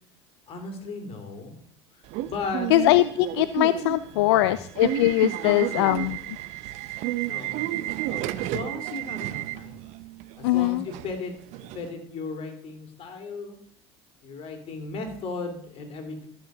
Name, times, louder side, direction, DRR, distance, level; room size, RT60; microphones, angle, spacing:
voice 1, 0.5-1.6 1.9-2.7 4.1-4.6 5.4-5.9 7.3-7.5 8.1-9.8 10.4-11.3 11.7-13.6 14.2-16.3, left 4 dB, 45° left, 4 dB, 3.0 m, -36 dB
Subway metro underground / Alarm, 2.1-11.9, right 14 dB, 60° right, 0.7 m, -32 dB
voice 2, 2.7-6.2 10.4-10.8, left 16 dB, 75° left, 14 dB, 0.4 m, -21 dB
13.5 x 6.2 x 6.2 m, 0.68 s
hypercardioid pair, 90°, 14 cm